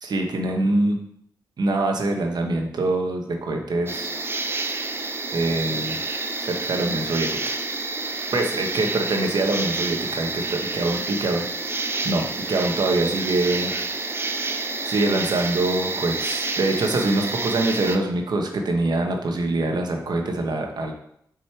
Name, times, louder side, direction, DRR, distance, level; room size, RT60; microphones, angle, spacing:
voice 1, 0.0-1.0 1.6-4.1 5.3-6.0 6.4-7.3 8.3-13.7 14.9-20.9, right 2 dB, 65° right, 3 dB, 1.3 m, -24 dB
sound 1, 3.9-18.0, right 3 dB, 30° right, 0.7 m, -29 dB
6.1 x 5.2 x 4.8 m, 0.71 s
wide cardioid pair, 100°, 8 cm